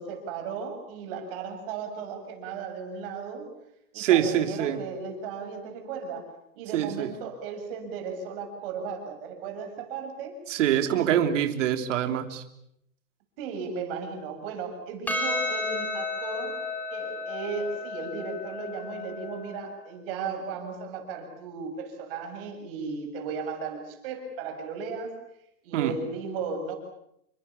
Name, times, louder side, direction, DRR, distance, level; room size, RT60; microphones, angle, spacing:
voice 1, 0.0-3.5 3.9-6.3 6.5-10.4 10.8-11.2 13.4-16.6 16.9-25.1 25.6-26.7, right 5 dB, 40° right, 5 dB, 7.5 m, -35 dB
voice 2, 4.0-4.8 6.7-7.1 10.5-12.4 25.7-25.9, right 10 dB, 55° right, 7 dB, 3.4 m, -25 dB
Percussion, 15.1-19.7, left 3 dB, 5° left, 3.3 m, -33 dB
30.0 x 24.5 x 7.3 m, 0.77 s
supercardioid pair, 170°, 43 cm